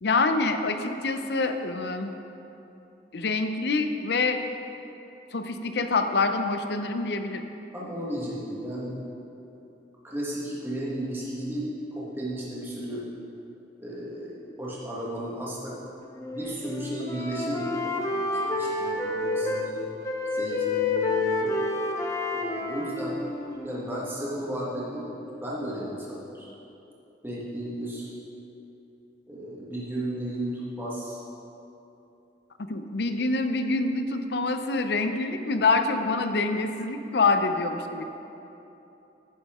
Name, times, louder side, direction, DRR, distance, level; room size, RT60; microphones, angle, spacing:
voice 1, 0.0-2.1 3.1-4.4 5.3-7.4 32.7-38.0, left 3 dB, 60° left, 7 dB, 0.6 m, -26 dB
voice 2, 7.7-9.0 10.0-13.0 13.8-15.8 16.3-19.8 20.3-21.5 22.3-23.2 23.6-25.1 25.4-26.5 27.2-28.1 29.3-31.2, right 1 dB, 10° right, -7 dB, 1.5 m, -34 dB
Wind instrument woodwind instrument, 16.2-19.7 20.0-24.0, left 2 dB, 20° left, 0.7 m, -29 dB
10.5 x 9.6 x 3.6 m, 3.0 s
head